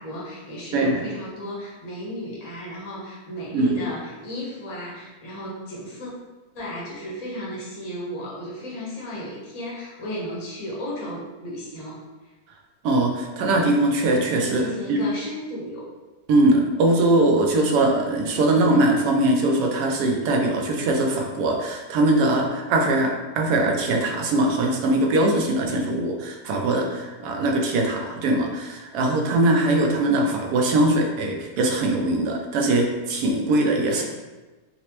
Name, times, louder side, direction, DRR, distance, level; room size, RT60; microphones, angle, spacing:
voice 1, 0.0-6.1 6.5-12.3 14.5-15.8 33.9-34.0, equal, 35° left, -5 dB, 0.6 m, -34 dB
voice 2, 12.8-14.6 14.9-15.0 16.3-34.0, right 2 dB, 85° right, 1 dB, 1.1 m, -21 dB
4.1 x 2.0 x 2.8 m, 1.2 s
omnidirectional pair, 1.6 m